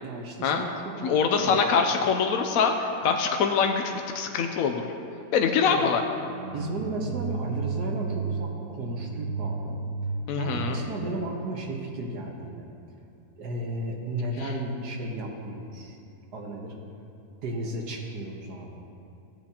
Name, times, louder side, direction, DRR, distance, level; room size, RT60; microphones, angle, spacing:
voice 1, 0.0-1.6 5.6-5.9 6.5-9.8 10.4-12.7 13.4-16.0 16.3-16.7 17.4-18.8, right 1 dB, 90° right, 0 dB, 1.8 m, -34 dB
voice 2, 1.0-4.8 5.3-6.0 10.3-10.8 14.4-14.5, left 6 dB, 70° left, 4 dB, 1.0 m, -24 dB
sound 1, 6.1-12.1, right 5 dB, 70° right, 1.1 m, -34 dB
16.5 x 8.5 x 2.9 m, 2.6 s
omnidirectional pair, 1.7 m